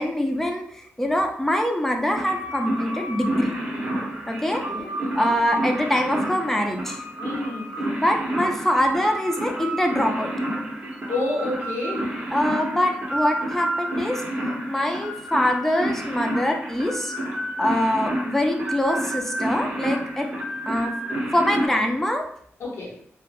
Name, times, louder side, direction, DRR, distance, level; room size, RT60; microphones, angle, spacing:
voice 1, 0.0-3.5 4.3-4.6 5.1-7.0 8.0-10.3 12.3-14.2 14.7-17.1 17.6-20.3 20.7-20.9 21.3-22.3, left 1 dB, 5° left, 3 dB, 0.4 m, -24 dB
sound 1, 2.1-21.7, right 1 dB, 30° right, 0.9 m, -30 dB
voice 2, 4.7-5.4 7.2-7.7 11.1-12.1 22.6-23.0, left 2 dB, 75° left, -3 dB, 0.8 m, -29 dB
3.1 x 2.1 x 2.3 m, 0.64 s
wide cardioid pair, 115°, 5 cm